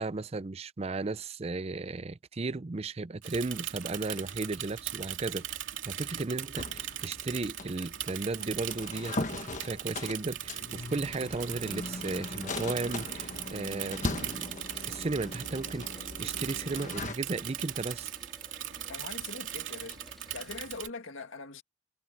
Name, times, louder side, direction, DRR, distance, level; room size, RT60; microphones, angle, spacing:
voice 1, 0.0-18.1, right 3 dB, 30° right, 0.5 m, -35 dB
Bicycle / Mechanisms, 3.2-20.9, right 11 dB, 75° right, 2.8 m, -39 dB
sound 1, 6.5-17.1, left 2 dB, 40° left, 1.4 m, -39 dB
sound 2, 10.2-20.6, equal, ahead, 3.3 m, -57 dB
voice 2, 18.9-20.0 20.3-21.6, left 3 dB, 80° left, 1.8 m, -42 dB
head